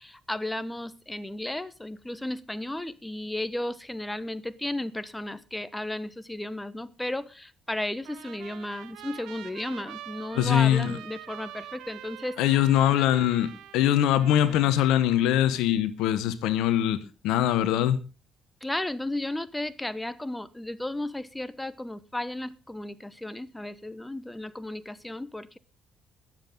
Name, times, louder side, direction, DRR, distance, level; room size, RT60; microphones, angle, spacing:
voice 1, 0.0-12.6 18.6-25.6, left 1 dB, 10° left, 1.1 m, -34 dB
Trumpet, 8.0-15.7, right 12 dB, 75° right, 1.0 m, -45 dB
voice 2, 10.3-10.9 12.4-18.0, left 11 dB, 80° left, 0.9 m, -23 dB
21.5 x 7.5 x 3.8 m
hypercardioid pair, 55°, 0 cm